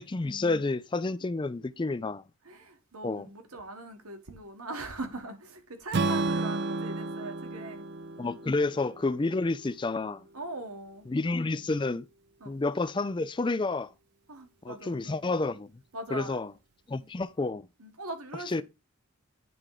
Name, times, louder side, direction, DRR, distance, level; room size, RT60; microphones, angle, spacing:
voice 1, 0.0-2.2 3.0-3.3 8.2-10.3 11.1-12.1 12.5-13.9 14.6-15.7 16.1-16.5 16.9-17.6 18.5-18.6, left 3 dB, 20° left, 0.3 m, -30 dB
voice 2, 2.4-7.9 10.3-11.1 12.4-12.6 14.3-15.2 15.9-16.4 17.8-18.6, right 2 dB, 85° right, 1.6 m, -41 dB
Strum, 5.9-10.1, right 3 dB, 50° right, 0.5 m, -32 dB
9.5 x 3.7 x 4.8 m
head